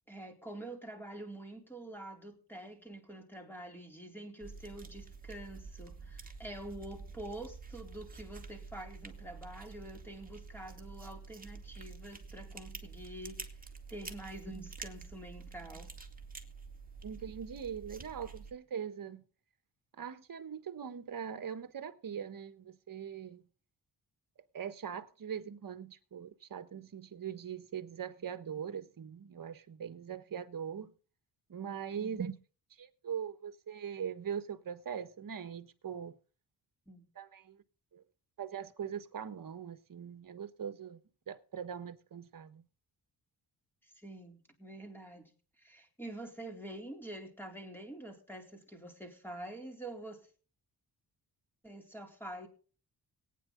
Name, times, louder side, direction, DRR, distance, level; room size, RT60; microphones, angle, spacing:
voice 1, 0.1-13.5 13.9-15.9 32.0-32.2 36.9-37.0 43.8-45.3 45.6-50.3 51.6-52.5, right 1 dB, 5° left, 4.1 m, -46 dB
sound 1, 4.4-18.5, right 4 dB, 20° right, 2.3 m, -48 dB
voice 2, 17.0-19.2 20.0-23.4 24.5-30.9 31.5-32.3 32.8-36.2 37.1-37.6 37.9-38.0 38.4-41.0 41.3-42.6, right 8 dB, 50° right, 1.4 m, -41 dB
19.5 x 9.6 x 4.0 m
cardioid pair, 85°, 42 cm